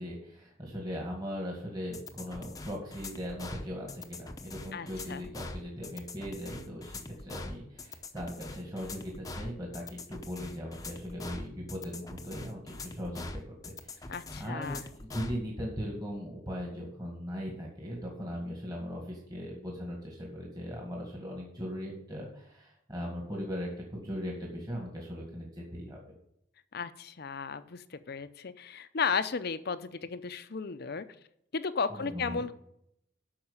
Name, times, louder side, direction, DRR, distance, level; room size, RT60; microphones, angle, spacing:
voice 1, 0.0-26.0 31.9-32.4, equal, 20° right, -1 dB, 1.9 m, -39 dB
sound 1, 1.9-15.4, left 2 dB, 20° left, 0.7 m, -43 dB
voice 2, 4.7-5.3 14.1-14.8 26.7-31.1 31.5-32.5, left 5 dB, 50° left, 13 dB, 0.6 m, -34 dB
8.8 x 6.0 x 7.1 m, 0.75 s
head